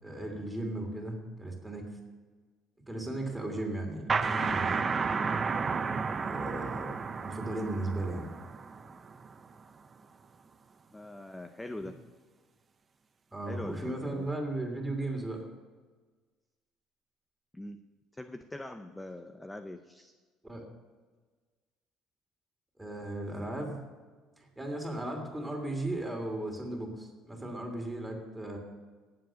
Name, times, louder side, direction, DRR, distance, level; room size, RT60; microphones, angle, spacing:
voice 1, 0.0-1.9 2.9-4.8 6.2-6.9 7.2-8.2 13.3-15.5 20.4-20.6 22.8-23.8 24.4-28.6, right 2 dB, 5° right, 2 dB, 2.9 m, -36 dB
sound 1, 4.1-9.5, right 5 dB, 25° right, 0.7 m, -32 dB
voice 2, 10.9-12.0 13.5-14.3 17.5-17.8 18.1-20.1, left 1 dB, 10° left, 8 dB, 0.6 m, -42 dB
17.5 x 7.7 x 6.3 m, 1.4 s
cardioid pair, 130°, 0 cm